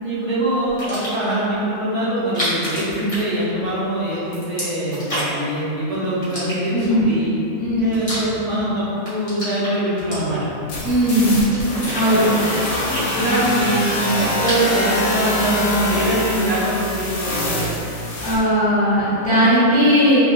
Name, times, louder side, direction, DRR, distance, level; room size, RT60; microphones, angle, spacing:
voice 1, 0.0-7.4 7.8-10.4 11.2-11.5 12.1-12.4 13.1-17.7, right 1 dB, 80° right, -14 dB, 0.3 m, -23 dB
sound 1, 0.7-1.3 2.2-3.8 4.1-5.5 6.2-7.0 7.6-8.7 9.0-10.6 11.1-12.0 12.4-13.7 14.0-14.9, equal, 30° left, 0.8 m, -30 dB
voice 2, 6.7-7.1 7.6-7.8 10.8-11.4 11.9-12.3 18.2-20.2, equal, 5° left, -15 dB, 1.1 m, -17 dB
sound 2, 10.7-18.4, left 1 dB, 65° left, 0.8 m, -24 dB
2.2 x 2.2 x 2.8 m, 2.9 s
omnidirectional pair, 1.4 m